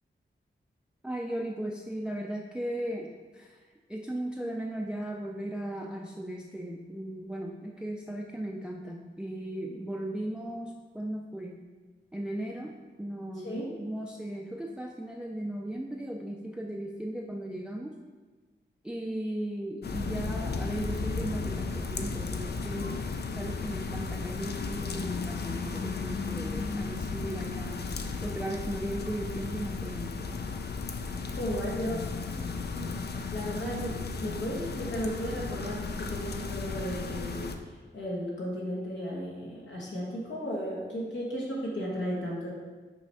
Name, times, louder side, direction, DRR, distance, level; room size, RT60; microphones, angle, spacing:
voice 1, 1.0-3.6 3.9-11.6 12.1-18.0 18.8-27.9 28.2-30.3, right 1 dB, 5° right, 0 dB, 0.4 m, -37 dB
sound 1, 19.8-37.6, left 4 dB, 60° left, 0.5 m, -34 dB
voice 2, 31.3-33.0 33.3-42.5, equal, 75° left, -5 dB, 1.2 m, -35 dB
5.9 x 3.3 x 5.4 m, 1.3 s
wide cardioid pair, 100°, 19 cm